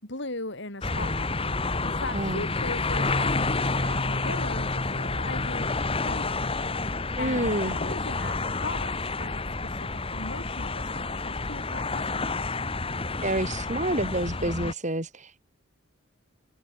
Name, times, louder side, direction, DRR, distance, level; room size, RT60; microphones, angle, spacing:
voice 1, 0.0-1.3 1.8-6.5 7.2-12.4, left 2 dB, 60° left, 6.3 m, -39 dB
sound 1, 0.8-14.7, left 3 dB, 30° left, 1.9 m, -29 dB
voice 2, 7.2-7.8 13.2-15.4, right 1 dB, 35° right, 6.5 m, -28 dB
head